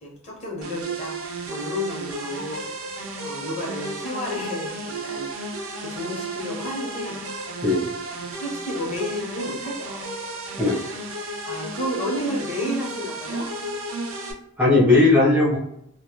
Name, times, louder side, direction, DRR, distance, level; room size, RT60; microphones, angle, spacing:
voice 1, 0.0-2.6 3.2-5.3 5.8-7.2 8.4-10.1 10.7-10.8 11.5-13.5, left 1 dB, 30° left, -3 dB, 0.7 m, -31 dB
sound 1, 0.6-14.3, right 2 dB, 80° right, 0.4 m, -33 dB
voice 2, 14.6-15.6, left 2 dB, 5° right, -6 dB, 0.5 m, -17 dB
2.1 x 2.0 x 2.8 m, 0.74 s
head